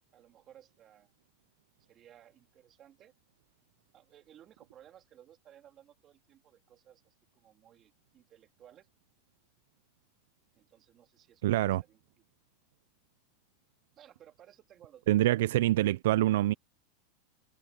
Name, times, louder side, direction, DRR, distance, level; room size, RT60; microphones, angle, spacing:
voice 1, 0.1-1.1 1.8-3.1 3.9-8.9 10.5-12.0 14.0-15.3, right 11 dB, 25° right, 3.5 m, -59 dB
voice 2, 11.4-11.8 15.1-16.5, right 15 dB, 70° right, 0.4 m, -25 dB
supercardioid pair, 160°, 0 cm